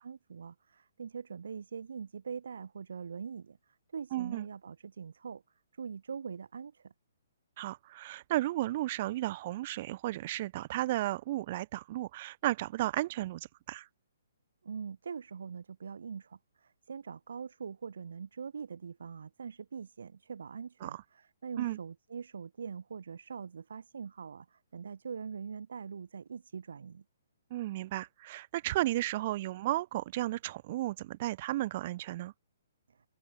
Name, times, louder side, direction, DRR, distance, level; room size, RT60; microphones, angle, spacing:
voice 1, 0.0-3.6 3.9-5.4 5.8-6.9 14.6-27.0, right 6 dB, 70° right, 2.3 m, -43 dB
voice 2, 4.1-4.5 7.6-13.9 20.8-21.0 21.6-21.8 27.5-32.3, right 16 dB, 45° right, 1.1 m, -34 dB
open air
figure-of-eight pair, 130°, 0 cm